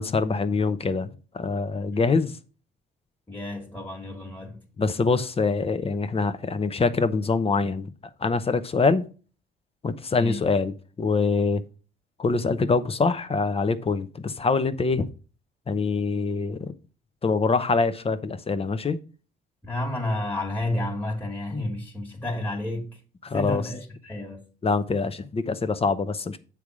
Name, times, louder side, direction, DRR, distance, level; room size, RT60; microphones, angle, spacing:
voice 1, 0.0-2.3 4.8-7.9 8.2-9.0 9.8-10.7 11.0-11.6 12.2-15.1 15.7-16.7 17.2-19.0 23.2-23.6 24.6-26.4, left 4 dB, 30° left, 0.8 m, -24 dB
voice 2, 3.3-4.6 10.2-10.4 19.6-23.0 23.3-24.5, left 1 dB, 10° left, 1.7 m, -31 dB
8.3 x 3.5 x 6.1 m
cardioid pair, 90°, 20 cm